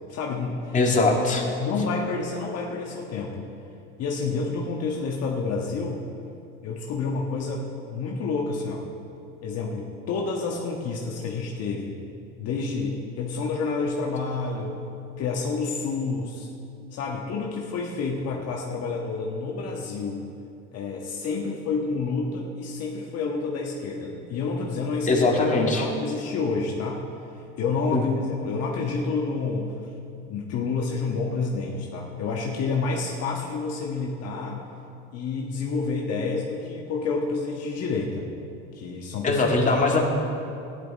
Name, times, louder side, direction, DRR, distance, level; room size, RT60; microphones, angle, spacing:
voice 1, 0.1-0.8 1.6-3.5 4.0-6.0 6.6-8.9 9.4-12.0 12.4-14.8 15.2-16.5 16.9-20.2 20.7-25.3 25.7-27.0 27.6-28.1 28.4-29.7 30.2-34.6 35.1-38.2 38.7-39.4, left 4 dB, 55° left, -1 dB, 1.4 m, -29 dB
voice 2, 0.7-1.4 25.1-25.8 27.9-28.1 39.2-40.0, left 3 dB, 25° left, -1 dB, 2.0 m, -21 dB
13.5 x 10.5 x 4.2 m, 2.6 s
supercardioid pair, 90°, 30 cm